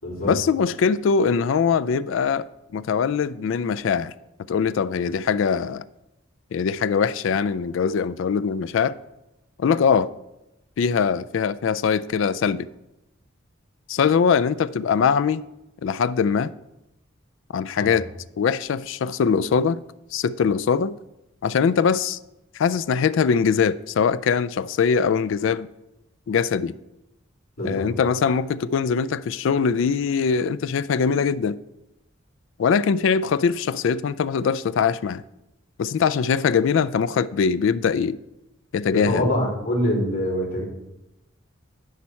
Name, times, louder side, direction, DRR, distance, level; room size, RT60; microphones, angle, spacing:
voice 1, 0.2-2.5 2.7-4.1 4.5-5.8 6.5-9.0 9.6-10.1 10.8-12.7 13.9-15.4 15.8-16.5 17.5-18.1 18.4-19.8 20.1-21.0 21.4-22.2 22.5-25.7 26.3-26.8 27.6-31.6 32.6-35.2 35.8-38.2 38.7-39.3, left 6 dB, 65° left, 0.3 m, -22 dB
voice 2, 27.6-27.9 38.9-40.6, left 1 dB, 90° left, 3.4 m, -24 dB
10.5 x 4.3 x 5.7 m
head